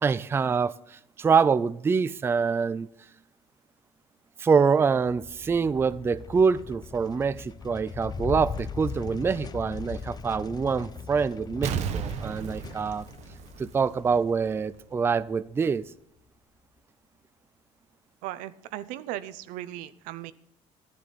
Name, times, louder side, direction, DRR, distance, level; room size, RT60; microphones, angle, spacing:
voice 1, 0.0-2.9 4.4-13.0 13.6-15.9, right 5 dB, 20° right, 0.4 m, -25 dB
sound 1, 5.0-15.5, left 6 dB, 30° left, 0.7 m, -40 dB
Explosion, 11.6-14.2 14.6-14.7, right 8 dB, 60° right, 1.0 m, -33 dB
voice 2, 18.2-20.3, right 13 dB, 85° right, 0.7 m, -37 dB
13.0 x 10.5 x 4.1 m
cardioid pair, 120°, 13 cm